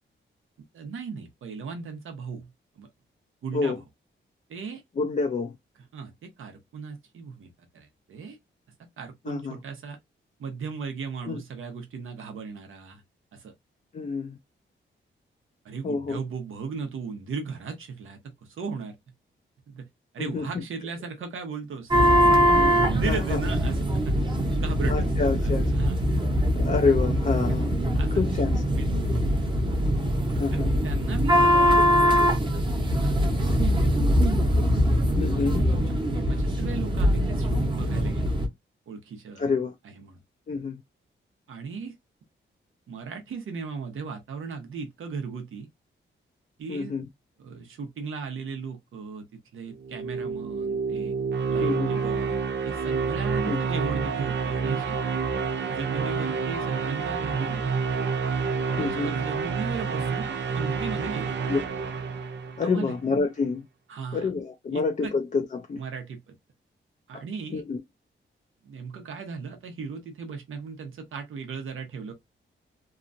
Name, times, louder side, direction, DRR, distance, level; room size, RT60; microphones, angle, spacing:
voice 1, 0.7-2.5 2.8-2.9 3.4-3.8 4.5-4.8 5.9-8.4 9.0-10.0 10.4-13.0 13.3-13.5 15.6-18.9 19.7-19.9 20.1-22.4 22.8-24.2 24.5-26.2 27.9-29.2 30.5-34.3 35.7-38.4 38.9-39.5 39.8-40.2 41.5-41.9 42.9-45.7 46.6-46.9 47.4-49.2 49.5-51.1 51.5-55.0 55.7-57.7 58.8-61.4 62.6-63.0 63.9-64.3 64.7-65.1 65.7-66.3 67.1-67.6 68.6-72.1, right 5 dB, 90° right, 0.9 m, -37 dB
voice 2, 5.0-5.5 9.3-9.6 11.3-11.4 13.9-14.4 15.8-16.2 20.2-20.6 22.5-23.4 24.8-25.7 26.6-27.8 28.1-28.8 30.4-30.7 35.2-35.6 39.4-39.7 40.5-40.8 46.7-47.0 51.6-51.9 53.5-53.6 58.8-59.1 61.5-61.6 62.6-63.7 64.1-65.8 67.1-67.2 67.5-67.8, left 4 dB, 40° left, 0.4 m, -28 dB
sound 1, 21.9-38.5, equal, 25° right, 0.8 m, -22 dB
sound 2, 49.7-62.9, right 5 dB, 60° right, 0.5 m, -28 dB
2.9 x 2.4 x 2.5 m
wide cardioid pair, 120°, 20 cm